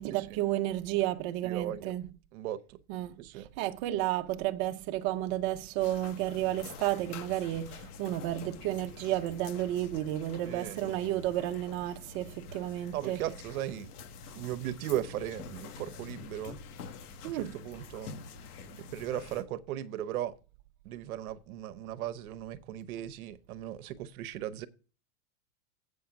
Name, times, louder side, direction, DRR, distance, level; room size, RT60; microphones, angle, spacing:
voice 1, 0.0-2.1 2.9-13.2 17.2-17.6, right 14 dB, 40° right, 0.6 m, -32 dB
voice 2, 1.4-1.9 2.3-2.8 3.2-3.5 10.4-10.8 12.9-13.9 14.3-16.6 17.2-18.1 18.8-20.3 20.8-24.7, right 12 dB, 70° right, 0.9 m, -37 dB
sound 1, 5.8-19.4, left 5 dB, 85° left, 1.4 m, -47 dB
8.0 x 6.4 x 5.8 m
supercardioid pair, 145°, 44 cm